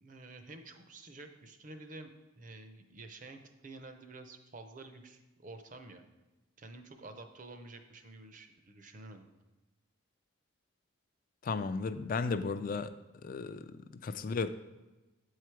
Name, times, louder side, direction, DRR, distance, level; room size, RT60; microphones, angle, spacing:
voice 1, 0.0-6.0 6.6-9.3, right 2 dB, 40° right, 7 dB, 0.6 m, -50 dB
voice 2, 11.4-12.9 13.2-13.7 14.0-14.5, left 4 dB, 40° left, 12 dB, 0.3 m, -34 dB
8.2 x 4.8 x 4.5 m, 1.1 s
head